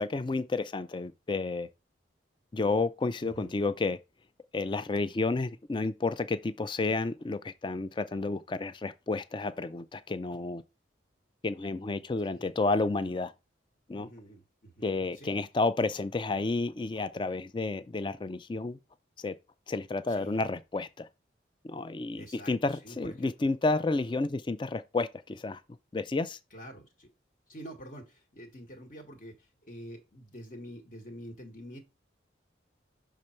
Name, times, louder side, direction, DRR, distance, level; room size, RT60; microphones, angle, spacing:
voice 1, 0.0-1.7 2.5-4.0 4.5-10.6 11.4-13.3 13.9-14.1 14.8-18.8 19.2-19.3 19.7-21.1 21.6-25.6 25.9-26.4, left 3 dB, 25° left, 0.3 m, -31 dB
voice 2, 3.2-3.5 12.2-12.5 13.9-15.4 20.1-20.4 22.1-23.3 26.5-27.1 27.5-31.8, equal, 45° left, 1.3 m, -47 dB
6.6 x 3.8 x 4.3 m
head